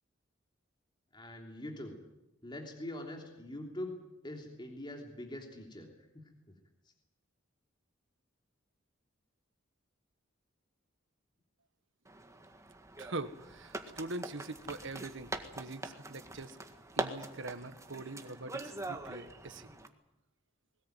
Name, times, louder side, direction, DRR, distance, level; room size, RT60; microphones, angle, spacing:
voice 1, 1.1-2.0 2.4-4.0 4.2-5.9 6.1-6.3, left 1 dB, 25° left, 2 dB, 3.2 m, -43 dB
sound 1, 12.1-19.9, right 2 dB, 15° right, 1.8 m, -43 dB
voice 2, 13.0-16.6 16.9-19.7, right 2 dB, 65° right, 10 dB, 1.6 m, -43 dB
21.0 x 19.0 x 9.3 m, 0.91 s
head